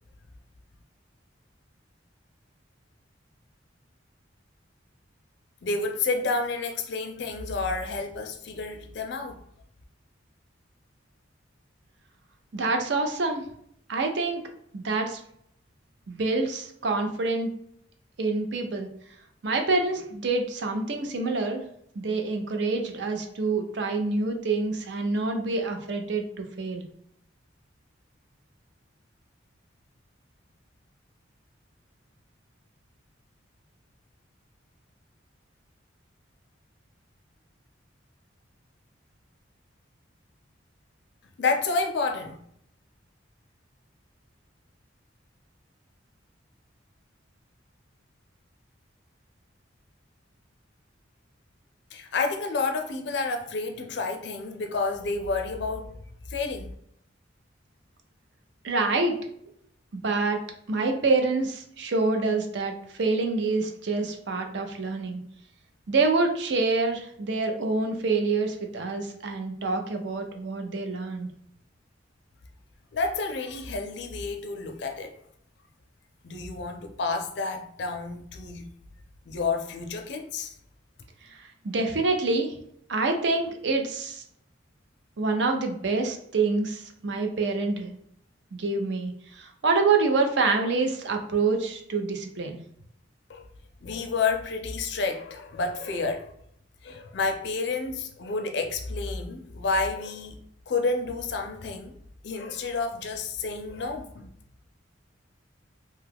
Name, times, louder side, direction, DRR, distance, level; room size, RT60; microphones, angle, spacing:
voice 1, 5.6-9.4 41.4-42.4 51.9-56.0 56.3-56.7 72.9-75.1 76.2-78.7 79.3-80.5 93.3-93.4 93.8-96.3 96.8-100.4 100.7-101.9 102.2-104.3, left 3 dB, 60° left, 0.4 m, -30 dB
voice 2, 12.5-13.4 13.9-14.4 14.7-15.2 16.1-17.5 18.2-18.9 19.4-21.6 22.0-26.8 58.6-59.3 59.9-60.4 60.7-65.2 65.9-71.3 81.3-82.5 82.9-84.2 85.2-87.9 88.5-92.6, right 3 dB, 65° right, 0.5 m, -26 dB
2.8 x 2.3 x 3.4 m
head